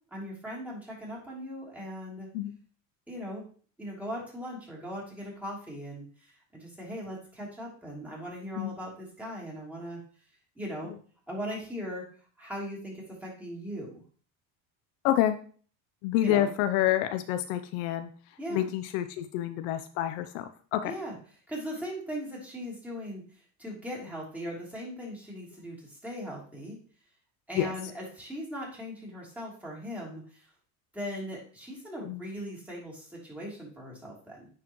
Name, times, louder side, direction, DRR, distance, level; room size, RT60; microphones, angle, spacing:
voice 1, 0.1-2.3 3.1-3.4 3.8-10.0 10.6-10.9 11.3-12.1 12.4-13.9 16.2-16.5 18.4-18.7 20.8-21.1 21.5-23.2 23.6-26.8 27.5-30.5 30.9-34.5, equal, 5° right, -5 dB, 3.1 m, -39 dB
voice 2, 15.0-15.4 16.0-18.1 18.5-21.0 27.5-27.7 32.0-32.2, left 12 dB, 70° left, 10 dB, 0.7 m, -28 dB
9.5 x 4.7 x 3.1 m, 0.42 s
supercardioid pair, 125°, 41 cm